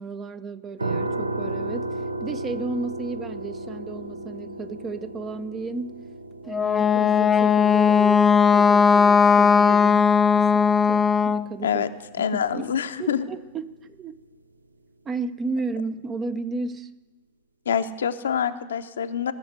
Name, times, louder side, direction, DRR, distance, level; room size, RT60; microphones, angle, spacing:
voice 1, 0.0-5.9 6.5-11.8 12.2-12.7 13.0-14.2 15.0-16.9, right 3 dB, 25° right, 12 dB, 0.7 m, -34 dB
sound 1, 0.8-13.7, right 2 dB, 80° right, 0.6 m, -35 dB
Wind instrument woodwind instrument, 6.5-11.5, left 6 dB, 15° left, 0.4 m, -18 dB
voice 2, 12.2-13.2 17.7-19.3, left 8 dB, 65° left, 9 dB, 0.7 m, -25 dB
18.0 x 6.6 x 8.1 m, 1.1 s
figure-of-eight pair, 90°, 0 cm